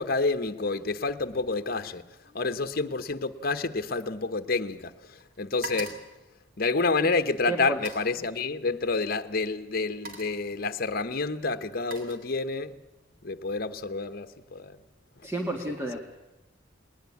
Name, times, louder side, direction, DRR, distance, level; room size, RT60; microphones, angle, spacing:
voice 1, 0.0-2.0 2.3-6.0 6.6-12.7 13.2-14.8, left 3 dB, 50° left, 1.1 m, -29 dB
sound 1, 1.1-1.5 1.8-4.9 5.2-7.1 7.7-8.2 9.2-9.4 9.8-10.5 11.3-12.7 13.1-13.5, right 3 dB, 50° right, 3.4 m, -45 dB
voice 2, 7.5-7.8 15.2-16.0, right 1 dB, 15° right, 1.9 m, -31 dB
20.0 x 19.5 x 8.5 m
head